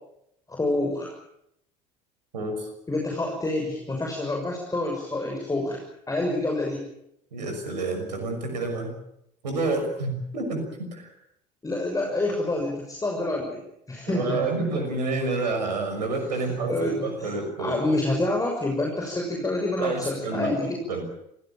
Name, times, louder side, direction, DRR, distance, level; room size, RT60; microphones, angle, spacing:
voice 1, 0.5-1.1 2.9-5.8 6.1-6.8 11.6-13.6 13.9-14.4 16.5-17.3 17.6-20.8, left 2 dB, 15° left, 1 dB, 6.4 m, -27 dB
voice 2, 2.3-2.7 7.3-8.9 9.4-11.1 14.1-17.7 19.8-21.0, right 3 dB, 80° right, 6 dB, 6.2 m, -29 dB
26.0 x 17.5 x 8.9 m, 0.79 s
figure-of-eight pair, 65°, 21 cm